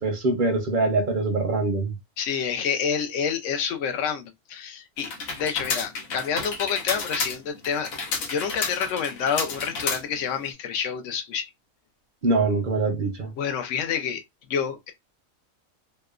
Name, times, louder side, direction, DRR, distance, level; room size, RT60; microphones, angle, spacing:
voice 1, 0.0-1.9 12.2-13.3, right 3 dB, 50° right, 0.6 m, -23 dB
voice 2, 2.2-7.9 8.3-11.5 13.4-14.2 14.5-14.9, left 7 dB, 70° left, 0.9 m, -28 dB
sound 1, 5.0-10.5, left 4 dB, 90° left, 1.2 m, -31 dB
2.8 x 2.1 x 2.3 m
omnidirectional pair, 1.4 m